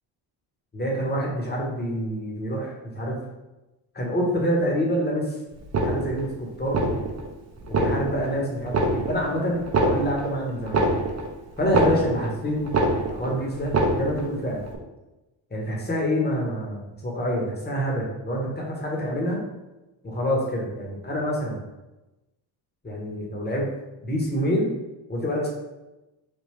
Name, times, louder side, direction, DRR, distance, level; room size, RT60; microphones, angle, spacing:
voice 1, 0.7-3.2 3.9-5.4 5.8-6.9 7.7-10.8 11.6-12.7 13.1-14.6 15.5-19.4 20.0-21.6 22.8-23.7 24.0-24.7 25.1-25.5, equal, 20° left, -2 dB, 1.1 m, -27 dB
sound 1, 5.6-6.3 6.6-7.3 7.6-8.3 8.6-9.3 9.6-12.3 12.6-13.3 13.6-14.3 14.6-14.8, right 2 dB, 35° right, 0.6 m, -24 dB
3.6 x 2.2 x 3.2 m, 1.0 s
supercardioid pair, 65°, 48 cm